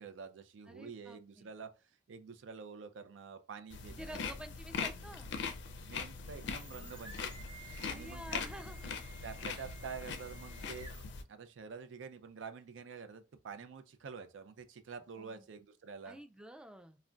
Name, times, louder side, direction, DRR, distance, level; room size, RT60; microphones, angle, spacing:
voice 1, 0.0-4.2 5.8-7.3 7.9-8.4 9.2-10.9 11.3-16.2, right 5 dB, 90° right, 0.4 m, -48 dB
voice 2, 0.7-1.5 3.9-5.4 8.0-8.8 15.2-15.5 16.0-17.0, equal, 5° right, 0.3 m, -50 dB
sound 1, 3.7-11.2, left 5 dB, 70° left, 0.4 m, -42 dB
sound 2, 6.1-11.3, right 3 dB, 30° right, 0.7 m, -55 dB
2.2 x 2.1 x 3.7 m
head